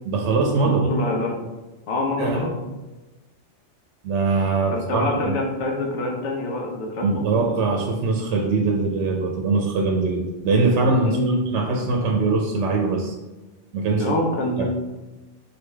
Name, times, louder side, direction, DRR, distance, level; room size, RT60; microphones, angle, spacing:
voice 1, 0.0-0.9 2.2-2.5 4.0-5.4 7.0-11.2 11.5-13.2 13.7-14.2 14.6-14.7, right 3 dB, 80° right, 1 dB, 0.9 m, -22 dB
voice 2, 0.6-1.4 1.9-2.5 4.7-7.4 11.0-11.4 14.0-14.7, left 2 dB, 80° left, 1 dB, 1.1 m, -26 dB
4.2 x 3.4 x 3.3 m, 1.1 s
omnidirectional pair, 1.2 m